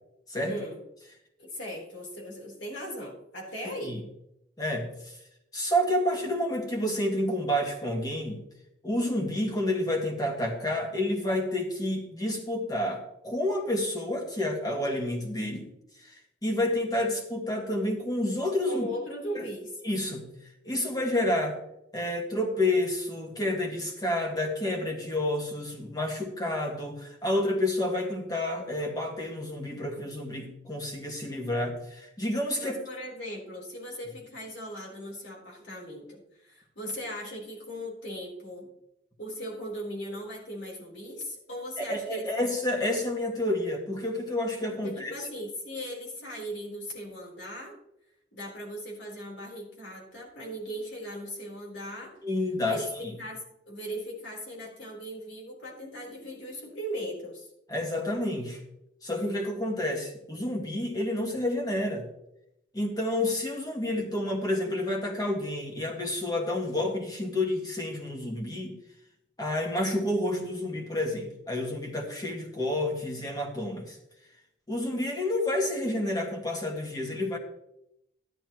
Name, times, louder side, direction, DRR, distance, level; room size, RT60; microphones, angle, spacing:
voice 1, 0.4-0.8 1.4-4.0 18.7-19.7 32.6-38.7 39.2-42.3 44.8-47.7 48.3-52.1 52.7-57.5, equal, 70° left, -2 dB, 4.1 m, -38 dB
voice 2, 3.7-4.0 4.6-5.2 5.5-8.4 8.8-15.7 16.0-18.9 19.3-19.4 19.8-20.3 20.7-21.6 21.9-32.8 41.8-45.3 52.2-53.2 57.7-58.6 59.0-62.1 62.7-68.8 69.4-74.0 74.7-77.4, left 1 dB, 20° left, 1 dB, 1.9 m, -29 dB
13.0 x 11.0 x 3.1 m, 0.82 s
head